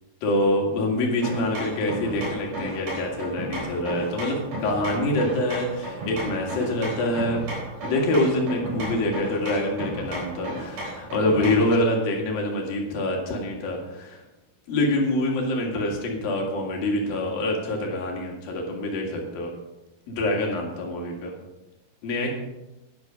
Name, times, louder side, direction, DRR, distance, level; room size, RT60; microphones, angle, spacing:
voice 1, 0.2-7.4 7.8-14.2 14.7-19.5 20.1-21.4 22.0-22.3, left 1 dB, 65° left, 0 dB, 3.6 m, -25 dB
sound 1, 1.2-11.8, equal, 55° right, 5.7 m, -34 dB
11.5 x 10.5 x 5.1 m, 1.0 s
omnidirectional pair, 4.7 m